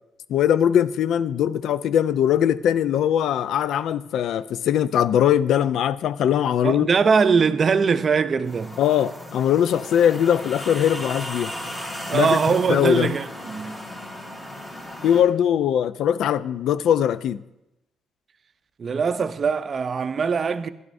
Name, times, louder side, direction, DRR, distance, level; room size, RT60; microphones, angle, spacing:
voice 1, 0.3-6.9 8.8-11.5 12.1-12.4 12.7-13.1 15.0-17.4, left 9 dB, 75° left, 0.3 m, -21 dB
voice 2, 6.6-8.8 12.1-13.8 18.8-20.7, right 5 dB, 45° right, 0.5 m, -21 dB
sound 1, 8.4-15.2, left 1 dB, 25° left, 2.5 m, -36 dB
12.0 x 10.5 x 2.6 m
cardioid pair, 90°, 0 cm